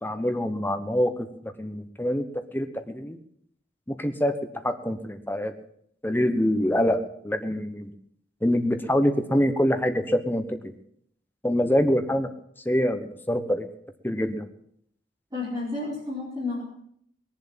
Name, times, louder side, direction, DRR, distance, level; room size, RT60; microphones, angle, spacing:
voice 1, 0.0-2.2 2.5-3.2 3.9-4.4 4.6-5.5 6.0-7.9 8.4-10.7 11.4-12.3 12.6-13.7 14.0-14.4, equal, 10° left, 7 dB, 1.2 m, -25 dB
voice 2, 15.3-16.6, left 3 dB, 20° right, -6 dB, 4.9 m, -31 dB
21.0 x 7.4 x 7.5 m, 0.67 s
head